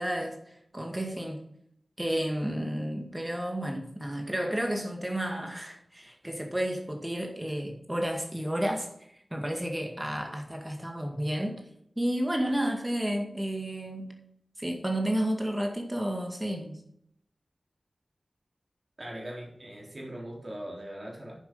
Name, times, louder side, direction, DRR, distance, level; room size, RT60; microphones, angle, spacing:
voice 1, 0.0-1.4 2.0-8.9 9.3-11.7 12.0-14.2 14.6-16.8, right 1 dB, 15° right, 2.0 m, -31 dB
voice 2, 19.0-21.4, right 1 dB, 45° right, 4.0 m, -40 dB
9.5 x 7.4 x 5.5 m
wide cardioid pair, 60°, 0 cm